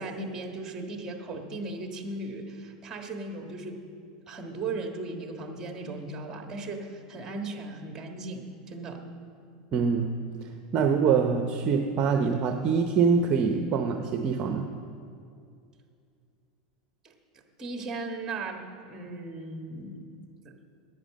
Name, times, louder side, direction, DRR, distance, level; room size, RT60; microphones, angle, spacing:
voice 1, 0.0-3.8 4.3-9.1 17.0-17.1 17.6-20.1 20.4-20.6, right 2 dB, 15° right, 4 dB, 1.6 m, -37 dB
voice 2, 9.7-10.1 10.4-14.7, right 5 dB, 35° right, 5 dB, 0.8 m, -25 dB
11.0 x 9.2 x 7.5 m, 2.4 s
supercardioid pair, 135°, 3 cm